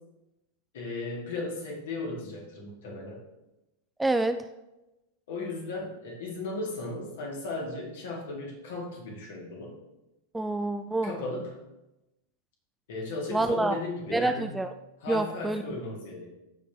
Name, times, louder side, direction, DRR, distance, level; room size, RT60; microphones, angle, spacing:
voice 1, 0.7-3.2 5.3-9.7 11.0-11.6 12.9-14.6 15.0-16.3, left 2 dB, 55° left, -1 dB, 2.4 m, -36 dB
voice 2, 4.0-4.4 10.3-11.1 13.3-13.8 14.1-14.7 15.1-15.6, right 2 dB, 5° right, 9 dB, 0.4 m, -27 dB
14.5 x 5.1 x 3.0 m, 0.96 s
figure-of-eight pair, 90°, 0 cm